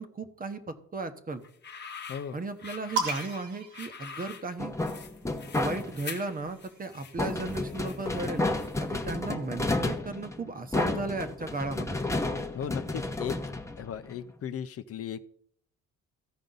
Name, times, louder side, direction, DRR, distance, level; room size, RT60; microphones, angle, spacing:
voice 1, 0.0-1.4 2.3-4.8 5.5-8.4 8.8-12.0, right 3 dB, 30° right, 9 dB, 1.1 m, -35 dB
sound 1, 1.4-9.0, left 6 dB, 35° left, 1.1 m, -45 dB
sound 2, 3.0-4.8 5.9-7.5, right 4 dB, 85° right, 1.7 m, -37 dB
sound 3, 4.6-6.2 7.2-14.3, left 2 dB, 10° left, 1.0 m, -31 dB
voice 2, 12.5-13.4 13.8-15.2, left 8 dB, 50° left, 10 dB, 0.6 m, -36 dB
15.0 x 5.2 x 3.9 m, 0.66 s
cardioid pair, 90°, 30 cm